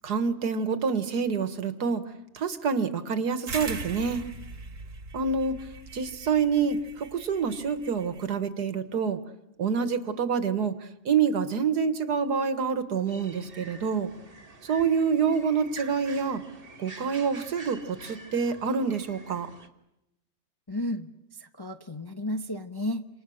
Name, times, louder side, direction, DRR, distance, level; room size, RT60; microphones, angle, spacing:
voice 1, 0.0-2.0 2.3-4.2 5.1-5.7 5.9-9.2 9.6-10.7 11.1-14.1 14.6-16.4 16.8-19.5, right 6 dB, 70° right, 10 dB, 1.9 m, -27 dB
sound 1, 3.5-8.4, right 3 dB, 50° right, 1.8 m, -40 dB
sound 2, 13.1-19.7, right 3 dB, 35° right, 1.9 m, -47 dB
voice 2, 20.7-21.1 21.4-23.0, left 1 dB, 20° left, 6 dB, 0.7 m, -32 dB
29.5 x 26.5 x 6.4 m, 0.89 s
omnidirectional pair, 1.8 m